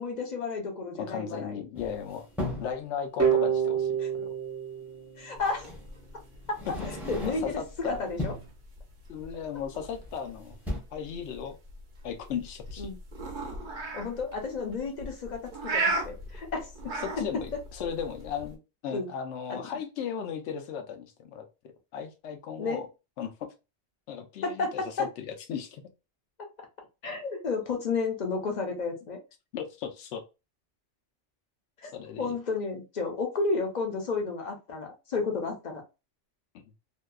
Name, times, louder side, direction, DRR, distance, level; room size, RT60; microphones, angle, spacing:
voice 1, 0.0-1.6 4.0-4.1 5.2-5.7 6.5-6.6 6.8-8.3 12.8-13.0 13.9-17.5 18.9-19.1 19.5-19.6 22.6-22.8 24.4-25.1 27.0-29.2 31.8-31.9 32.2-35.8, left 4 dB, 45° left, 3 dB, 0.7 m, -32 dB
voice 2, 1.0-2.3 2.6-4.3 7.2-8.0 9.1-10.6 10.9-11.6 12.0-12.9 17.0-22.9 23.2-23.5 24.1-25.8 29.5-30.2 31.9-32.3, left 7 dB, 75° left, 6 dB, 0.9 m, -36 dB
sound 1, 1.8-2.8 4.4-4.5 5.7-5.9 6.4-7.7 8.0-8.6 9.9-10.3 10.5-10.8, left 1 dB, ahead, 0.7 m, -36 dB
sound 2, 3.2-6.0, right 7 dB, 25° right, 0.3 m, -28 dB
sound 3, 5.4-18.5, right 3 dB, 50° right, 0.7 m, -37 dB
2.6 x 2.2 x 2.2 m, 0.27 s
omnidirectional pair, 1.2 m